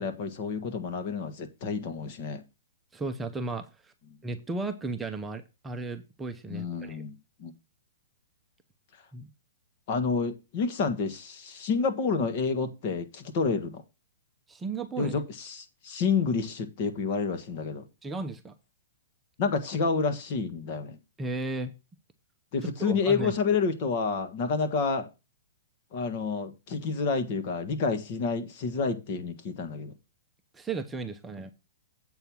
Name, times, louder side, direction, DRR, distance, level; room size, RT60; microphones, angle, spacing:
voice 1, 0.0-2.4 6.5-7.5 9.9-13.8 15.0-17.8 19.4-21.0 22.5-25.1 25.9-29.9, left 5 dB, 45° left, 1.6 m, -29 dB
voice 2, 2.9-3.9 4.2-7.0 9.1-9.3 14.5-15.1 18.0-18.5 21.2-21.7 22.6-23.3 30.5-31.5, right 3 dB, 10° right, 0.8 m, -35 dB
8.0 x 4.5 x 7.1 m
hypercardioid pair, 145°, 0 cm